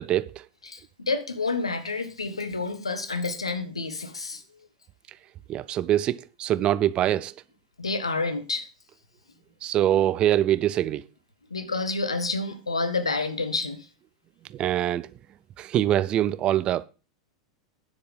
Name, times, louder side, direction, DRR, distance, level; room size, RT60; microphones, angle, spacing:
voice 1, 0.0-0.4 5.5-7.3 9.6-11.0 14.5-15.1 15.6-16.8, right 12 dB, 35° right, 0.6 m, -24 dB
voice 2, 0.6-4.4 7.8-8.7 11.5-13.9, left 3 dB, 90° left, 1.4 m, -29 dB
9.7 x 7.6 x 5.4 m
figure-of-eight pair, 90°, 3 cm